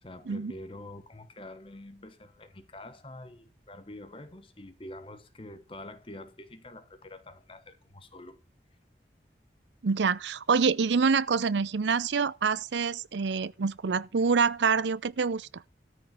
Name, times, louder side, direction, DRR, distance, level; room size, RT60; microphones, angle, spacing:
voice 1, 0.0-8.4, left 1 dB, 30° left, 1.1 m, -46 dB
voice 2, 9.8-15.5, right 5 dB, 90° right, 0.6 m, -26 dB
13.5 x 5.3 x 7.3 m
head